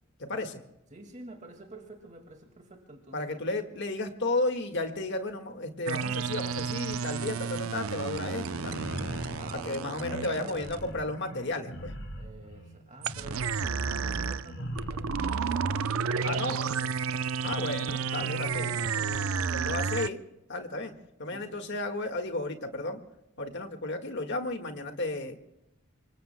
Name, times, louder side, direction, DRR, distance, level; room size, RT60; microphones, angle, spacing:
voice 1, 0.2-0.6 3.1-8.8 9.6-11.9 16.2-16.6 17.4-20.2 20.5-20.9 21.2-23.0 23.4-25.4, left 2 dB, 60° left, 6 dB, 1.8 m, -33 dB
voice 2, 0.9-3.4 9.4-10.7 12.2-17.0 18.5-19.0 21.3-21.6, right 1 dB, 35° right, 3 dB, 2.1 m, -47 dB
sound 1, 5.9-10.8 13.0-20.1, right 6 dB, 90° right, 0.6 m, -31 dB
sound 2, 8.4-15.2, equal, 85° left, 5.1 m, -40 dB
26.0 x 24.5 x 2.2 m, 0.88 s
head